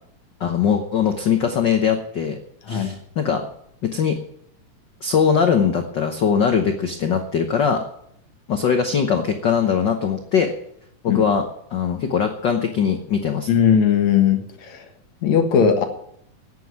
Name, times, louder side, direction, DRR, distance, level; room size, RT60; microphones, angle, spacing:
voice 1, 0.4-2.4 2.7-3.5 3.8-4.2 5.0-7.8 8.5-10.5 11.0-11.5 11.7-13.5, left 7 dB, 80° left, 6 dB, 1.0 m, -21 dB
voice 2, 13.5-14.9 15.2-15.8, left 7 dB, 65° left, 6 dB, 2.7 m, -18 dB
9.5 x 9.3 x 9.4 m, 0.71 s
omnidirectional pair, 3.7 m